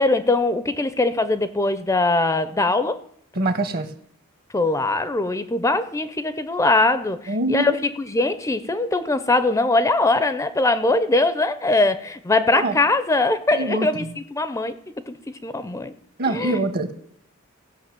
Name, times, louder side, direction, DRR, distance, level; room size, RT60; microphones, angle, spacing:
voice 1, 0.0-3.0 4.5-7.7 8.0-14.0 14.3-14.7 15.1-15.2 15.4-15.9 16.3-16.6, left 2 dB, 15° left, 12 dB, 0.5 m, -21 dB
voice 2, 3.3-3.9 7.3-7.8 12.5-12.7 13.5-14.1 16.2-16.9, right 2 dB, 45° right, 10 dB, 1.1 m, -24 dB
16.0 x 5.6 x 7.5 m, 0.69 s
head